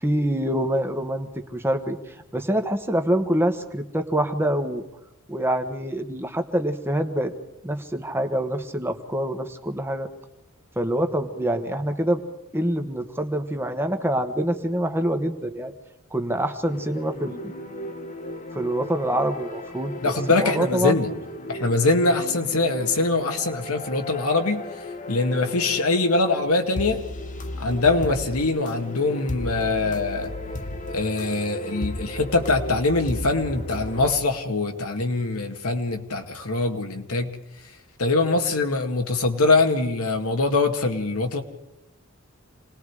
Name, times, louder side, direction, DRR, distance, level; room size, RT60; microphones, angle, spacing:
voice 1, 0.0-2.0 2.3-4.8 5.3-7.3 7.6-10.1 10.8-12.2 12.5-15.7 16.1-17.4 18.5-21.0, right 1 dB, 10° right, 1.3 m, -25 dB
sound 1, 16.6-34.1, left 1 dB, 35° left, 1.3 m, -35 dB
voice 2, 20.0-21.1 21.5-24.6 25.1-27.0 27.6-30.3 30.9-37.3 38.0-41.4, left 3 dB, 85° left, 2.1 m, -23 dB
27.5 x 20.0 x 4.9 m
head